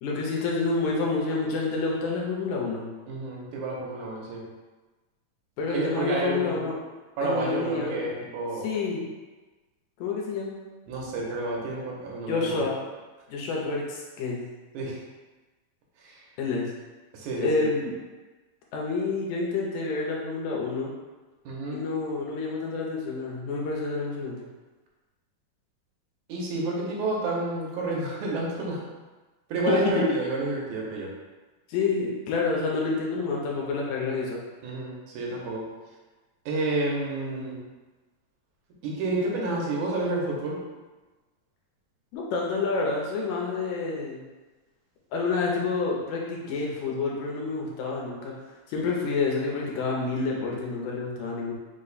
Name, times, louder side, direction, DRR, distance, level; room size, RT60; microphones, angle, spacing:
voice 1, 0.0-2.9 5.6-6.8 7.2-8.0 8.6-9.0 10.0-10.6 12.3-12.8 13.3-14.5 16.4-16.7 17.4-17.9 18.7-20.9 21.7-24.4 29.7-30.0 31.7-34.4 42.1-44.2 45.1-48.3 48.7-51.5, left 4 dB, 80° left, -2 dB, 2.0 m, -28 dB
voice 2, 3.1-4.4 5.7-6.7 7.2-8.7 10.9-12.6 14.7-15.0 16.0-16.2 17.1-17.7 21.5-21.8 26.3-28.8 29.5-31.1 34.6-35.7 36.5-37.6 38.8-40.6, right 2 dB, 90° right, -3 dB, 2.3 m, -30 dB
5.0 x 2.1 x 4.0 m, 1.2 s
omnidirectional pair, 3.4 m